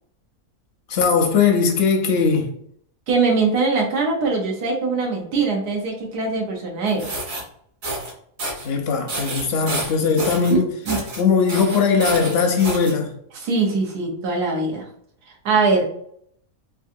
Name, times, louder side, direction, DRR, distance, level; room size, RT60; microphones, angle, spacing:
voice 1, 0.9-2.5 8.6-10.7 11.2-13.1, left 5 dB, 60° left, 0.7 m, -19 dB
voice 2, 3.1-7.1 9.9-10.0 10.5-10.6 10.9-11.0 13.4-14.8 15.4-15.9, right 4 dB, 90° right, 1.5 m, -22 dB
sound 1, 6.9-7.4 7.8-8.1 8.4-8.7 9.1-10.5 10.9-11.2 11.5-12.9, right 1 dB, 60° right, 1.5 m, -29 dB
3.8 x 2.6 x 2.6 m
omnidirectional pair, 1.6 m